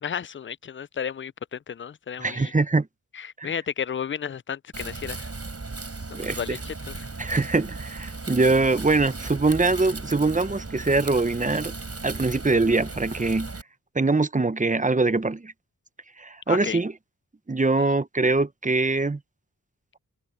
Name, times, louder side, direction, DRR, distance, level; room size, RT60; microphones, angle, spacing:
voice 1, 0.0-2.5 3.1-5.3 6.2-7.1 16.5-16.8, left 8 dB, 35° left, 0.4 m, -33 dB
voice 2, 2.2-2.9 3.4-3.5 6.1-6.6 7.2-11.7 12.0-13.5 13.9-15.5 16.2-16.9 17.5-19.2, right 3 dB, 20° right, 0.9 m, -23 dB
Wind, 4.7-13.6, right 3 dB, 45° right, 5.9 m, -36 dB
cardioid pair, 50°, 34 cm